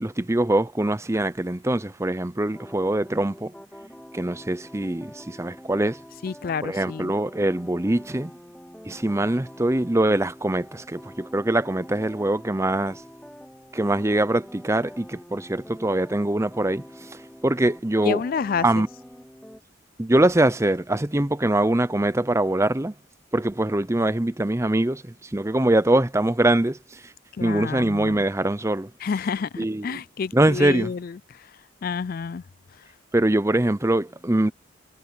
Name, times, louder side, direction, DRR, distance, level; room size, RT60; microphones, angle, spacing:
voice 1, 0.0-3.5 4.1-6.0 6.6-8.3 8.9-13.0 13.7-17.2 17.4-18.2 18.6-18.9 20.0-22.9 23.3-27.0 27.4-28.9 29.6-30.0 30.3-30.9 33.1-34.5, right 1 dB, 15° right, 0.6 m, -23 dB
sound 1, 2.5-19.6, equal, 5° left, 2.0 m, -45 dB
voice 2, 6.2-7.2 18.0-18.9 27.4-28.2 29.0-31.5 31.8-32.4, left 5 dB, 45° left, 0.3 m, -29 dB
head